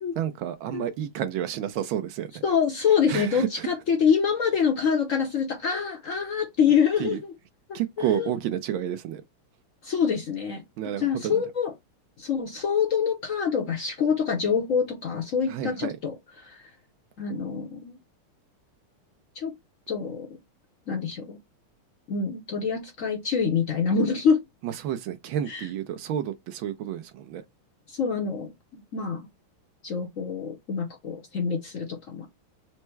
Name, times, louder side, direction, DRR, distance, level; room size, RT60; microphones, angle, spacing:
voice 1, 0.2-2.4 3.1-3.7 7.0-7.2 7.7-9.2 10.8-11.4 15.5-15.9 24.6-27.4, right 10 dB, 75° right, 1.2 m, -30 dB
voice 2, 2.4-7.3 7.7-8.3 9.8-10.6 11.0-11.7 12.2-16.6 17.2-18.0 19.3-19.5 19.9-20.3 20.9-21.4 22.1-24.4 25.5-25.7 27.9-28.5 28.9-29.2 29.8-32.3, left 6 dB, 60° left, 0.8 m, -26 dB
4.5 x 2.0 x 4.4 m
omnidirectional pair, 2.4 m